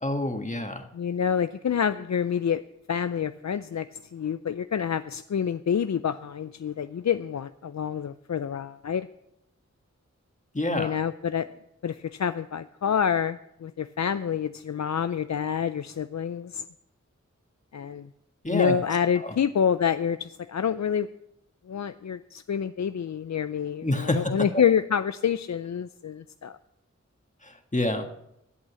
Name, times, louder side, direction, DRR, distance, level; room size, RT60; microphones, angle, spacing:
voice 1, 0.0-0.9 10.5-10.9 18.4-18.8 19.2-19.3 23.8-24.5 27.4-28.1, left 1 dB, 25° left, 5 dB, 1.6 m, -28 dB
voice 2, 0.9-2.6 2.9-9.1 10.7-11.5 11.8-16.6 17.7-18.1 18.5-21.1 21.7-26.6, left 8 dB, 70° left, 12 dB, 0.4 m, -27 dB
11.5 x 8.2 x 6.9 m, 0.80 s
wide cardioid pair, 45°, 29 cm